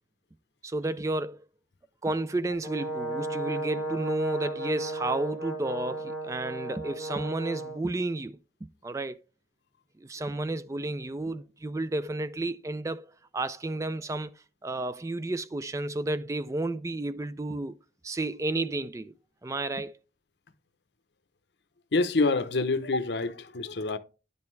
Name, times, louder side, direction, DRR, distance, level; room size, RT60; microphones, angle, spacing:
voice 1, 0.6-1.4 2.0-9.2 10.0-17.8 18.0-19.1 19.4-19.9, right 2 dB, 15° right, 0.3 m, -32 dB
Brass instrument, 2.6-7.8, right 2 dB, 90° right, 3.6 m, -34 dB
voice 2, 21.9-24.0, left 3 dB, 65° left, 0.7 m, -26 dB
10.5 x 5.4 x 3.2 m
head